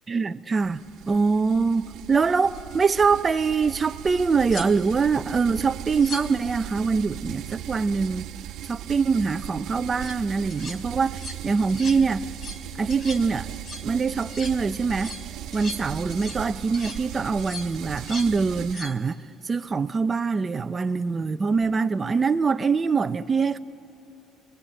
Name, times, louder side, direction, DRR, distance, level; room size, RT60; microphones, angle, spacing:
voice 1, 0.1-8.3 8.7-12.3 12.8-13.5 13.8-15.1 15.5-23.6, right 5 dB, 20° right, 0.6 m, -24 dB
sound 1, 0.6-18.7, right 12 dB, 65° right, 1.1 m, -38 dB
sound 2, 3.9-4.0 4.5-5.0 5.9-6.4 9.8-10.2 10.5-10.8 11.1-11.4 11.7-12.0 12.3-12.6 12.9-13.3 13.5-13.9 14.2-14.6 14.9-16.5 16.7-17.0 17.4-18.3 18.6-19.0 21.6-21.8, left 2 dB, 40° left, 2.4 m, -39 dB
27.0 x 21.5 x 8.8 m
cardioid pair, 150°, 0 cm